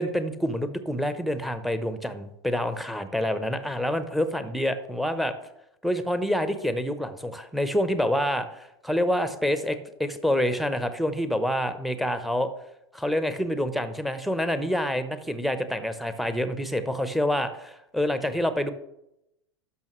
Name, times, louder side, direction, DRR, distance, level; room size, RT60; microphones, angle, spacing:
voice 1, 0.0-5.3 5.8-12.5 12.9-18.7, equal, ahead, 10 dB, 0.8 m, -27 dB
12.0 x 5.8 x 3.1 m, 0.84 s
hypercardioid pair, 95°, 14 cm